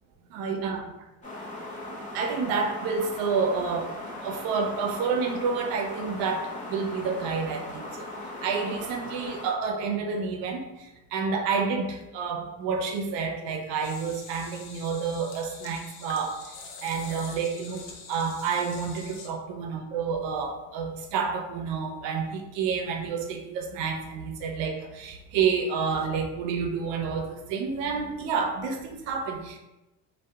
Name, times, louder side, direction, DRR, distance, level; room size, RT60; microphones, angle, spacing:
voice 1, 0.3-0.9 2.1-3.9 4.2-7.9 8.4-16.5 16.8-17.8 18.1-29.6, right 5 dB, 70° right, 3 dB, 0.6 m, -29 dB
sound 1, 1.2-9.5, left 1 dB, 15° left, 0.8 m, -39 dB
sound 2, 13.8-19.3, left 4 dB, 70° left, 0.6 m, -45 dB
2.7 x 2.3 x 2.3 m, 0.98 s
supercardioid pair, 95°, 45 cm